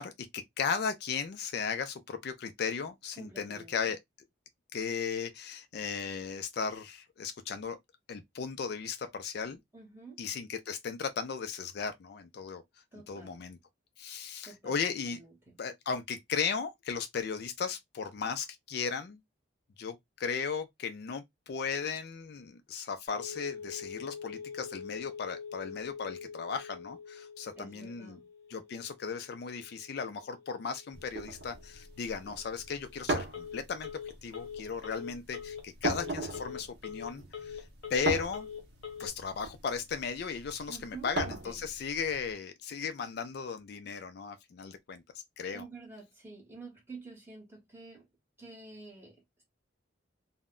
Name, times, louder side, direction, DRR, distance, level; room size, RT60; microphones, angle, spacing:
voice 1, 0.0-4.0 4.7-7.8 8.1-9.6 10.2-12.6 13.1-13.6 14.0-15.2 15.6-19.2 19.8-28.2 28.5-33.9 34.2-38.5 39.0-45.0 45.4-45.6, left 6 dB, 55° left, 0.3 m, -36 dB
voice 2, 3.2-3.9 9.7-10.2 12.9-13.4 14.4-14.8 15.1-15.6 27.6-28.3 40.7-41.1 41.4-41.7 45.5-48.1 48.4-49.4, right 4 dB, 10° right, 1.0 m, -49 dB
Telephone, 23.1-39.1, left 6 dB, 75° left, 1.0 m, -45 dB
sound 1, 30.9-42.3, right 2 dB, 55° right, 0.7 m, -39 dB
2.1 x 2.1 x 3.5 m
head